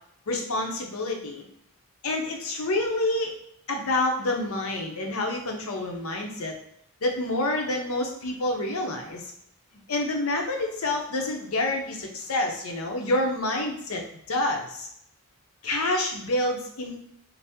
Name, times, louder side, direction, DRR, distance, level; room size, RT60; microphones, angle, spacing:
voice 1, 0.3-1.4 2.0-3.3 3.7-6.5 7.0-9.3 9.9-14.0 14.3-14.9 15.6-17.0, left 2 dB, 75° left, 2 dB, 0.7 m, -28 dB
4.1 x 2.0 x 3.5 m, 0.71 s
head